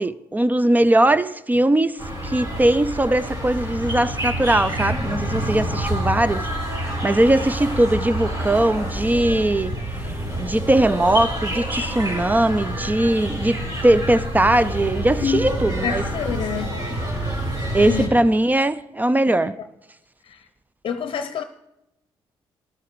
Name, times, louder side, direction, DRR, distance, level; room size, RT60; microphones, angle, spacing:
voice 1, 0.0-16.0 17.7-19.6, right 1 dB, 15° right, 0.4 m, -20 dB
sound 1, 2.0-18.1, right 1 dB, 40° right, 4.5 m, -27 dB
voice 2, 15.8-16.8 17.8-18.1 20.3-20.4 20.8-21.4, left 7 dB, 55° left, 0.7 m, -26 dB
14.5 x 12.0 x 3.1 m
supercardioid pair, 65°, 10 cm